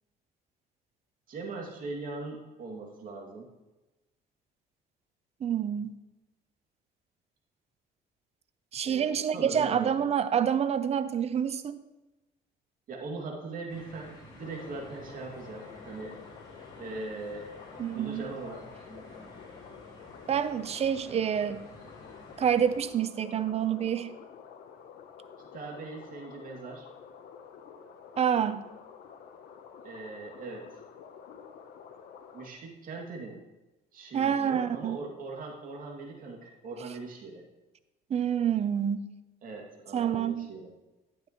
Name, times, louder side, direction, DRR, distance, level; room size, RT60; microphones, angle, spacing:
voice 1, 1.3-3.5 8.8-10.0 12.9-16.2 16.8-17.5 17.9-18.7 25.5-26.8 29.8-30.7 32.3-33.4 33.9-37.4 39.4-40.7, right 3 dB, 55° right, -1 dB, 2.4 m, -40 dB
voice 2, 5.4-5.9 8.7-11.8 17.8-18.2 20.3-21.7 22.4-24.1 28.2-28.7 34.1-35.0 38.1-39.1 39.9-40.5, right 8 dB, 40° right, 13 dB, 0.6 m, -27 dB
sound 1, 13.7-22.8, left 1 dB, 25° left, 3.3 m, -51 dB
sound 2, 14.4-32.5, left 7 dB, 65° left, 0.9 m, -49 dB
11.0 x 9.0 x 3.1 m, 1.1 s
cardioid pair, 110°, 17 cm